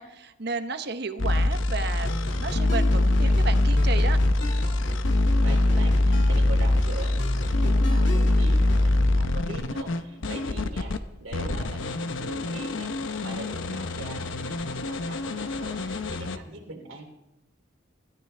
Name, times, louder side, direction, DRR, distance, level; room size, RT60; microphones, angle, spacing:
voice 1, 0.0-2.1 2.4-4.2, right 4 dB, 55° right, 10 dB, 0.9 m, -32 dB
sound 1, 1.2-11.0 11.3-16.4, left 1 dB, 80° left, 0.9 m, -24 dB
sound 2, 2.0-8.9, equal, 60° left, 2.4 m, -36 dB
voice 2, 5.4-17.0, right 2 dB, 85° right, 2 dB, 2.9 m, -42 dB
25.5 x 13.5 x 3.3 m, 0.94 s
head